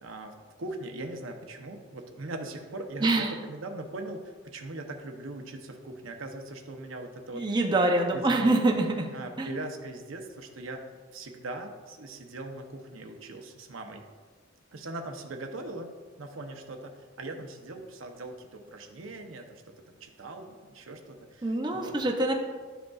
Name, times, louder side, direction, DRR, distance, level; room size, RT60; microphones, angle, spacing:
voice 1, 0.0-7.5 8.1-8.5 9.1-14.0 14.7-15.9 16.2-19.6 19.9-21.9, right 2 dB, 90° right, 4 dB, 0.7 m, -40 dB
voice 2, 3.0-3.3 7.3-9.1 9.4-9.5 21.4-22.3, right 2 dB, 20° right, 1 dB, 0.6 m, -25 dB
11.0 x 5.1 x 2.3 m, 1.5 s
head